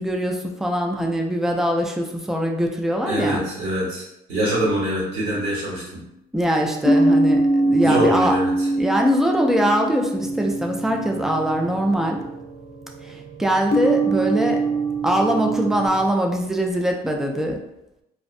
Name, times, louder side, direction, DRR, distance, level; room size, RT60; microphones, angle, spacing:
voice 1, 0.0-3.5 6.3-8.4 8.7-12.2 13.0-14.6 15.0-17.6, equal, 5° right, 2 dB, 0.3 m, -22 dB
voice 2, 3.0-4.0 4.3-6.0 7.8-8.7, right 1 dB, 90° right, -6 dB, 1.3 m, -24 dB
sound 1, 5.3-5.4 6.8-12.3 13.7-15.9, right 2 dB, 70° left, 0.6 m, -22 dB
sound 2, 10.1-16.1, right 4 dB, 55° right, 1.1 m, -42 dB
2.5 x 2.0 x 2.5 m, 0.85 s
cardioid pair, 110°, 17 cm